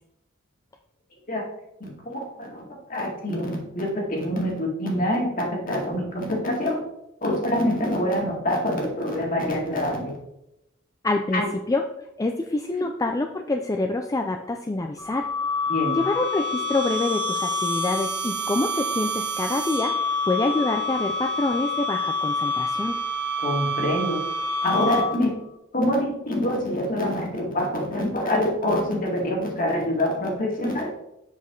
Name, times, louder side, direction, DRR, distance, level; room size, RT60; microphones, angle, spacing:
voice 1, 1.8-6.8 7.2-10.2 11.3-11.5 15.7-16.0 23.4-24.2 24.6-25.3 25.7-30.9, left 1 dB, 45° left, -1 dB, 2.2 m, -25 dB
voice 2, 11.0-11.4 11.7-11.8 12.2-15.3 16.0-19.9 20.3-23.0, left 2 dB, 15° left, 4 dB, 0.4 m, -26 dB
sound 1, 15.0-25.4, left 2 dB, 60° right, 1.0 m, -27 dB
7.3 x 6.2 x 3.9 m, 0.83 s
head